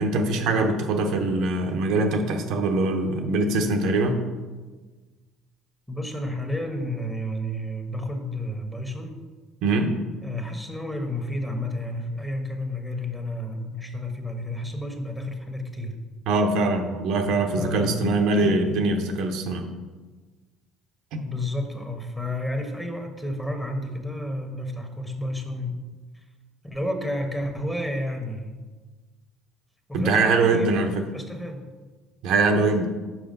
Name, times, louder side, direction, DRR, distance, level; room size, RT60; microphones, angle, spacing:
voice 1, 0.0-4.3 9.6-10.0 16.3-19.6 21.1-21.2 29.9-31.0 32.2-32.9, right 2 dB, 70° right, 4 dB, 0.8 m, -23 dB
voice 2, 5.9-9.2 10.2-16.0 17.6-18.0 21.2-25.8 26.1-26.2 26.6-28.7 29.9-30.7 31.1-31.6, left 1 dB, 5° left, 3 dB, 1.2 m, -31 dB
5.9 x 4.8 x 5.3 m, 1.3 s
supercardioid pair, 85°, 0 cm